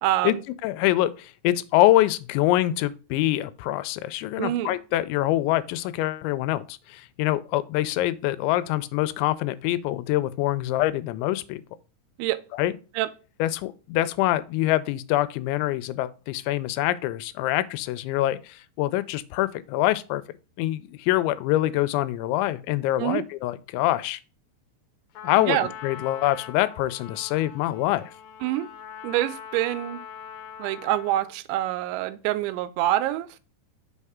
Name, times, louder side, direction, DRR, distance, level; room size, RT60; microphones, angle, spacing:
voice 1, 0.0-0.4 4.4-4.8 12.2-12.4 13.0-13.1 23.0-23.3 25.4-25.7 28.4-28.7 29.0-30.0 30.6-33.4, right 14 dB, 85° right, 2.9 m, -26 dB
voice 2, 0.6-11.6 12.5-12.7 13.4-20.2 20.6-24.2 25.2-28.1, left 15 dB, 90° left, 2.9 m, -25 dB
Trumpet, 25.1-31.4, left 8 dB, 70° left, 2.5 m, -42 dB
6.4 x 5.5 x 3.5 m
omnidirectional pair, 5.2 m